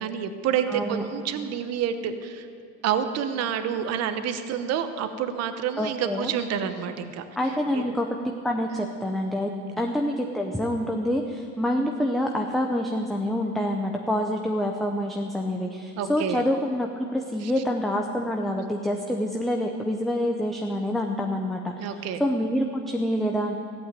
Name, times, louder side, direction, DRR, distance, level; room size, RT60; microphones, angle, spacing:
voice 1, 0.0-2.5 2.8-7.2 7.7-7.9 9.6-9.8 16.0-16.4 17.4-17.5 21.8-22.2, right 8 dB, 40° right, 9 dB, 1.0 m, -28 dB
voice 2, 0.7-1.0 5.8-6.3 7.4-9.5 9.8-23.5, equal, ahead, 2 dB, 0.5 m, -27 dB
15.5 x 8.6 x 9.0 m, 2.4 s
cardioid pair, 155°, 37 cm